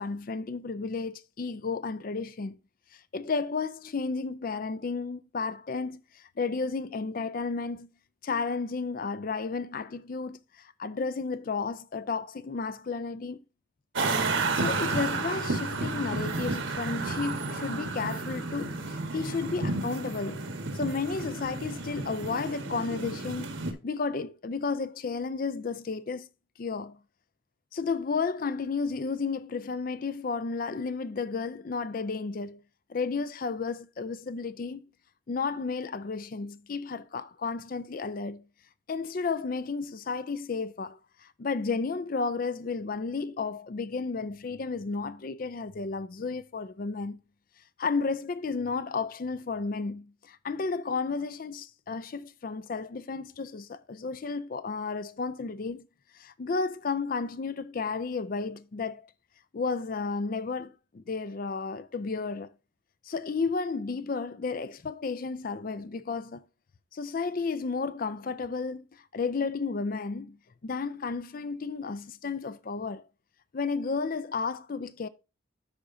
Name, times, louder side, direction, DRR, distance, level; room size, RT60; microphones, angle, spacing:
voice 1, 0.0-2.6 2.9-7.9 8.2-13.4 14.3-20.4 20.7-26.3 26.6-27.0 27.7-32.6 32.9-34.8 35.3-38.5 38.9-47.2 47.8-55.8 56.1-59.1 59.5-62.5 63.1-66.4 66.9-70.4 70.6-73.0 73.5-75.1, left 4 dB, 45° left, 0.4 m, -32 dB
sound 1, 14.0-23.7, right 3 dB, 70° right, 1.4 m, -32 dB
13.0 x 5.0 x 2.6 m
head